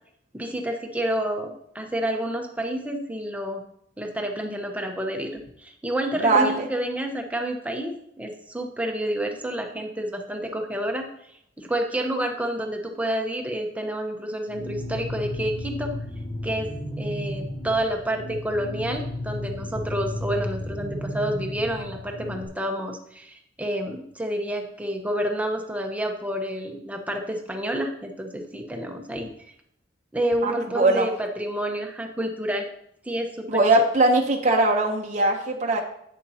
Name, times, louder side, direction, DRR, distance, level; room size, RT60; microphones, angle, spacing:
voice 1, 0.3-3.6 4.0-15.9 16.4-29.3 30.1-32.7 33.0-33.8, right 1 dB, 10° right, 3 dB, 1.0 m, -29 dB
voice 2, 6.2-6.7 30.4-31.1 33.5-35.8, right 2 dB, 40° right, 0 dB, 0.9 m, -20 dB
sound 1, 14.5-22.5, left 1 dB, 70° left, 3.0 m, -33 dB
10.5 x 8.3 x 2.9 m, 0.72 s
head